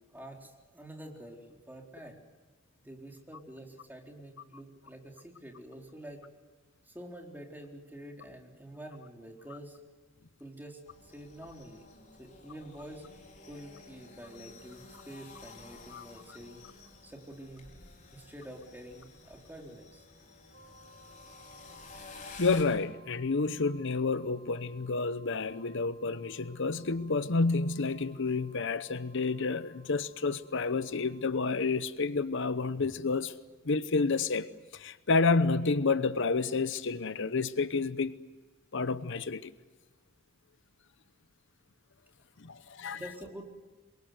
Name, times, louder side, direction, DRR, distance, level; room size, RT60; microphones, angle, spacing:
voice 1, 0.0-2.2 2.8-6.2 6.8-9.8 10.4-11.9 12.2-13.1 13.5-16.7 17.0-17.7 18.1-20.0 42.6-43.4, right 1 dB, 10° right, 4.1 m, -47 dB
sound 1, 10.8-22.6, left 3 dB, 40° left, 5.2 m, -52 dB
sound 2, 20.5-31.4, right 1 dB, 50° right, 6.3 m, -59 dB
voice 2, 22.4-33.3 33.7-38.2 38.7-39.5 42.4-43.0, left 4 dB, 65° left, 0.9 m, -30 dB
27.5 x 23.0 x 7.9 m
head